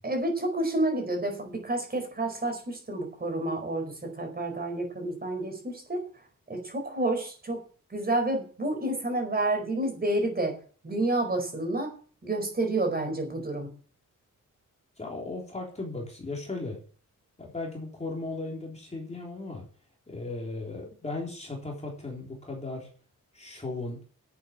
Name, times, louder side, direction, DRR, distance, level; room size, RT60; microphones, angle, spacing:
voice 1, 0.0-6.0 6.5-7.6 7.9-10.5 10.8-11.9 12.2-13.7, right 2 dB, 30° right, 4 dB, 4.8 m, -29 dB
voice 2, 15.0-16.8 17.4-19.7 20.1-22.9 23.3-24.0, left 2 dB, 20° left, -1 dB, 3.5 m, -36 dB
11.5 x 8.5 x 7.4 m, 0.40 s
wide cardioid pair, 175°, 32 cm